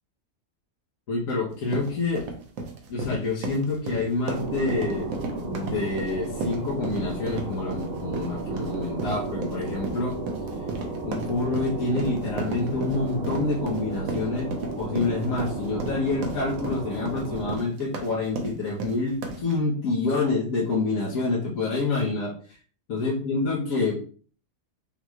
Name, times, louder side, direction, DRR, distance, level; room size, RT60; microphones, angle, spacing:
voice 1, 1.1-2.3 2.9-5.1 5.4-10.2 11.0-14.5 14.8-22.6 22.9-24.0, left 3 dB, 80° left, -5 dB, 1.4 m, -27 dB
sound 1, 1.5-19.6, right 3 dB, 90° right, 1.2 m, -35 dB
sound 2, 4.3-17.5, right 3 dB, 50° right, 1.0 m, -34 dB
5.4 x 3.1 x 2.3 m, 0.43 s
omnidirectional pair, 1.4 m